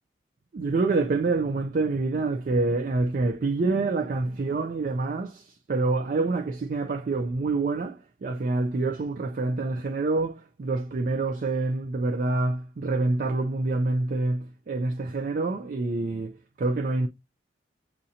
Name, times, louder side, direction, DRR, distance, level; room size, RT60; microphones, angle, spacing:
voice 1, 0.5-17.1, right 3 dB, 50° right, 0.4 m, -27 dB
7.4 x 2.6 x 2.7 m
head